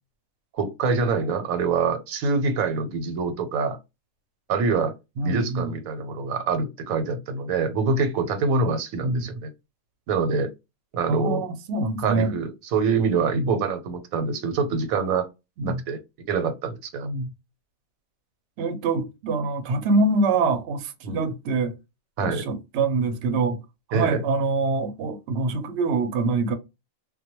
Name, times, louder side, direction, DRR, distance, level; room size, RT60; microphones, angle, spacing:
voice 1, 0.5-3.8 4.5-4.9 5.2-9.5 10.1-10.5 10.9-11.4 12.0-15.3 15.6-16.0 16.3-17.1 21.0-21.3 22.2-22.5 23.9-24.2, right 4 dB, 90° right, 1.1 m, -25 dB
voice 2, 5.2-5.7 9.0-9.3 11.1-12.3 13.3-13.5 15.6-15.8 17.0-17.3 18.6-21.7 22.2-23.6 23.9-26.5, right 3 dB, 65° right, 0.7 m, -25 dB
2.2 x 2.2 x 2.8 m
omnidirectional pair, 1.4 m